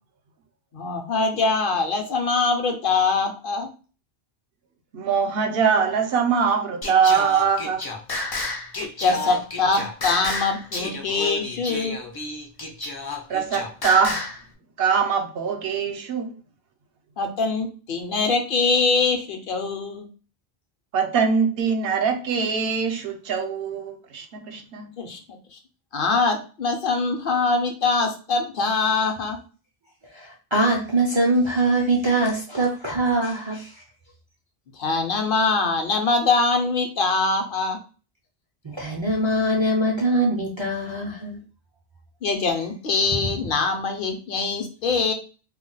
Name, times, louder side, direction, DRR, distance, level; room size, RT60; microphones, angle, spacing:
voice 1, 0.7-3.7 9.0-12.0 17.2-20.1 25.0-25.2 25.5-25.6 25.9-29.4 34.8-37.8 42.2-45.1, left 4 dB, 65° left, 0.7 m, -23 dB
voice 2, 4.9-7.8 13.3-14.2 14.8-16.3 20.9-24.9, right 6 dB, 70° right, 0.8 m, -22 dB
Singing, 6.8-14.4, left 2 dB, 35° left, 0.4 m, -31 dB
voice 3, 30.1-33.8 38.6-41.4, right 2 dB, 40° right, 0.4 m, -23 dB
2.2 x 2.1 x 3.8 m
omnidirectional pair, 1.0 m